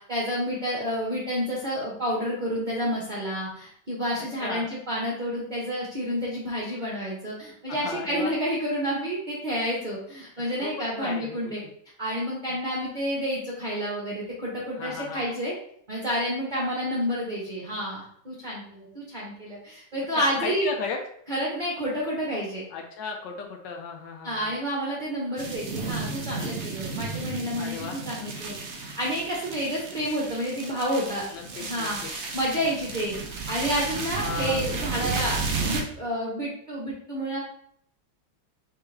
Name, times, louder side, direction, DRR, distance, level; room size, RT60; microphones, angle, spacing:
voice 1, 0.1-11.6 12.0-15.5 15.9-20.7 21.3-22.6 24.2-31.2 31.6-37.4, equal, 35° right, -5 dB, 0.7 m, -29 dB
voice 2, 7.7-8.3 10.6-11.7 14.7-15.3 20.2-21.0 22.7-24.5 27.6-28.0 31.3-32.1 34.2-34.6, left 5 dB, 75° left, 3 dB, 1.1 m, -35 dB
sound 1, 25.4-35.8, right 4 dB, 90° right, 0.6 m, -33 dB
4.4 x 3.4 x 3.3 m, 0.68 s
omnidirectional pair, 2.2 m